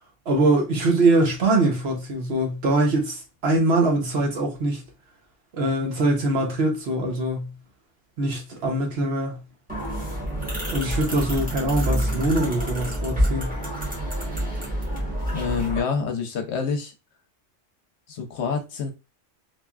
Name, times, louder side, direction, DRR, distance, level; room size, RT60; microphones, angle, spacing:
voice 1, 0.3-4.8 5.5-7.5 8.2-9.4 10.7-13.6, right 2 dB, 60° right, 1.0 m, -23 dB
sound 1, 9.7-15.8, equal, 5° right, 1.1 m, -27 dB
voice 2, 15.3-16.9 18.1-18.9, left 5 dB, 65° left, 0.8 m, -27 dB
3.2 x 2.5 x 2.3 m
omnidirectional pair, 1.3 m